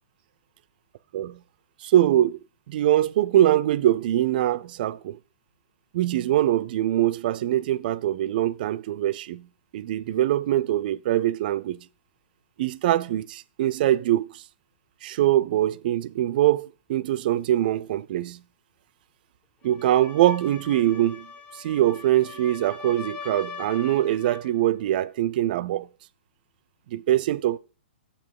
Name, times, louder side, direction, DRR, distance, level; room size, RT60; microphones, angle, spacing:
voice 1, 1.8-2.4 2.7-5.2 5.9-9.5 9.7-11.9 12.6-14.4 15.0-18.4 19.6-25.9 26.9-27.6, right 13 dB, 50° right, 0.4 m, -23 dB
sound 1, 19.6-24.5, left 5 dB, 20° left, 0.7 m, -41 dB
6.8 x 5.5 x 4.7 m
hypercardioid pair, 130°, 6 cm